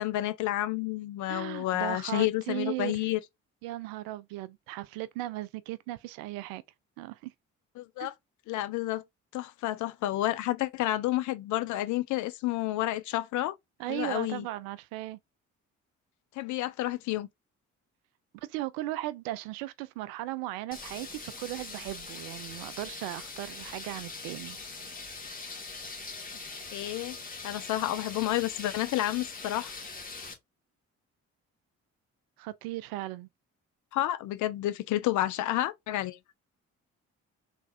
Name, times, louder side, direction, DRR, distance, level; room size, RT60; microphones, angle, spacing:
voice 1, 0.0-3.2 7.8-8.1 8.5-9.0 9.3-13.5 13.9-14.4 16.4-17.3 26.7-27.2 27.4-29.7 33.9-36.2, left 15 dB, 50° left, 0.5 m, -30 dB
voice 2, 1.3-3.1 3.6-6.6 7.0-7.3 8.0-8.1 13.8-15.2 18.4-24.6 32.4-33.3, right 16 dB, 60° right, 0.5 m, -37 dB
sound 1, 20.7-30.3, left 4 dB, 20° left, 1.1 m, -42 dB
3.4 x 3.0 x 2.5 m
figure-of-eight pair, 40°, 40 cm